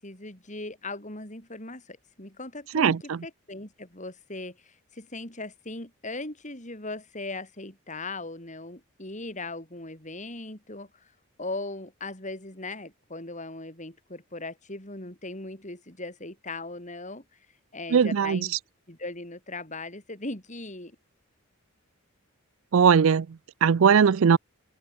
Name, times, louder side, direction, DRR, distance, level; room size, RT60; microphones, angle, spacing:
voice 1, 0.0-11.1 11.4-17.2 17.7-18.6 18.9-21.0, left 2 dB, 35° left, 5.1 m, -39 dB
voice 2, 2.7-3.2 17.9-18.4 22.7-24.4, right 6 dB, 65° right, 0.4 m, -20 dB
head